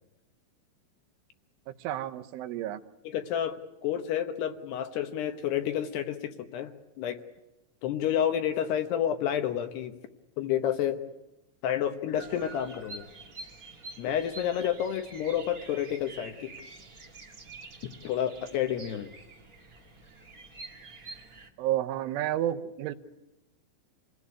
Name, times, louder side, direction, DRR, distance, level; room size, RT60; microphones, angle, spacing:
voice 1, 1.8-2.8 21.6-22.9, right 12 dB, 80° right, 7 dB, 3.4 m, -30 dB
voice 2, 3.0-6.7 7.0-7.2 7.8-9.9 10.4-11.0 11.6-13.1 14.0-16.5 18.0-19.1, left 10 dB, 70° left, 7 dB, 2.8 m, -30 dB
Bird vocalization bird call bird song, 12.1-21.5, right 3 dB, 40° right, 1.2 m, -47 dB
27.5 x 18.0 x 9.6 m, 0.96 s
omnidirectional pair, 5.5 m